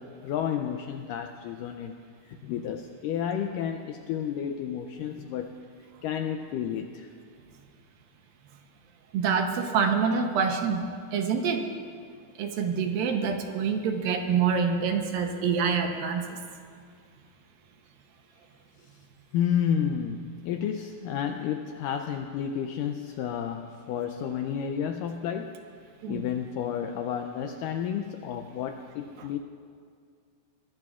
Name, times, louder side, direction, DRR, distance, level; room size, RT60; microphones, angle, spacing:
voice 1, 0.0-1.9 2.2-5.6 6.0-7.1 18.8-19.0 19.3-25.6 26.1-29.4, left 8 dB, 90° left, 6 dB, 1.9 m, -31 dB
voice 2, 9.1-10.8 11.1-11.7 12.4-16.4 26.0-26.2, right 6 dB, 80° right, 4 dB, 2.5 m, -26 dB
22.5 x 19.0 x 2.4 m, 2.2 s
omnidirectional pair, 4.4 m